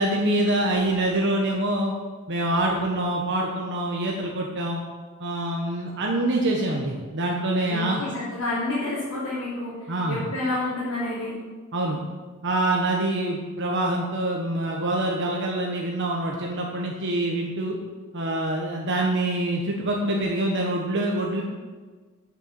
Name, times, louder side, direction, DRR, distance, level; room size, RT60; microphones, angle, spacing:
voice 1, 0.0-1.9 2.3-4.8 5.2-8.0 9.9-10.2 11.7-12.0 12.4-17.8 18.1-21.4, right 1 dB, 55° right, -1 dB, 1.2 m, -25 dB
voice 2, 7.7-11.3, left 2 dB, 80° left, -10 dB, 3.3 m, -29 dB
8.7 x 7.0 x 7.5 m, 1.4 s
head